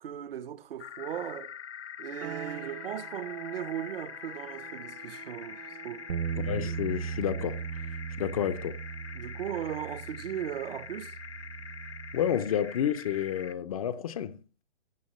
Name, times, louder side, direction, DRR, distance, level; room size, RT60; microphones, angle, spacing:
voice 1, 0.0-1.5 2.0-6.1 9.1-11.2, right 10 dB, 60° right, 1.0 m, -37 dB
sound 1, 0.8-13.5, left 7 dB, 75° left, 1.3 m, -44 dB
sound 2, 2.2-12.7, right 12 dB, 20° right, 0.5 m, -50 dB
sound 3, 6.1-12.4, right 7 dB, 75° right, 0.8 m, -38 dB
voice 2, 6.4-7.6 8.2-8.8 12.1-14.4, left 10 dB, 35° left, 0.6 m, -30 dB
16.5 x 10.5 x 3.1 m
hypercardioid pair, 145°, 33 cm